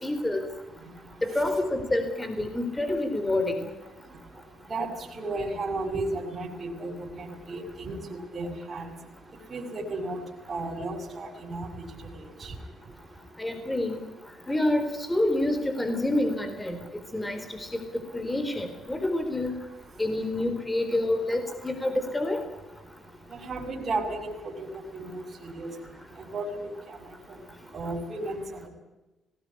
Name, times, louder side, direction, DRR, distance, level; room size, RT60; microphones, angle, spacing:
voice 1, 0.0-0.4 1.2-3.7 13.4-14.0 14.5-16.8 17.1-17.7 18.1-19.5 20.0-22.4, left 1 dB, 15° left, 7 dB, 4.1 m, -27 dB
voice 2, 5.1-8.9 9.5-10.2 10.5-11.7 12.2-12.5 23.3-25.7 26.2-27.0 27.3-27.4 27.7-28.7, right 2 dB, 35° right, -2 dB, 6.0 m, -34 dB
19.5 x 18.5 x 9.8 m, 1.1 s
cardioid pair, 90°, 0 cm